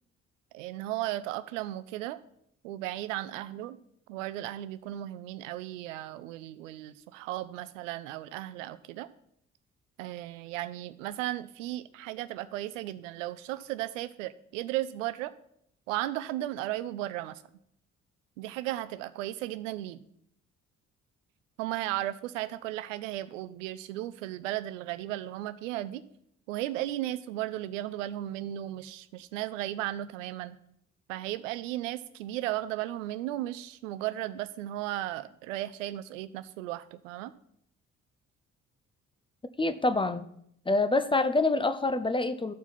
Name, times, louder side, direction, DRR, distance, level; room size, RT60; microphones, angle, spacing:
voice 1, 0.5-2.2 2.6-3.8 4.1-9.1 10.0-15.3 15.9-17.4 18.4-20.0 21.6-26.0 26.5-30.6 31.1-37.3, right 14 dB, 70° right, 14 dB, 0.5 m, -35 dB
voice 2, 39.6-40.3 40.7-42.5, left 2 dB, 15° left, 10 dB, 0.5 m, -26 dB
13.5 x 4.6 x 4.2 m, 0.71 s
figure-of-eight pair, 45°, 39 cm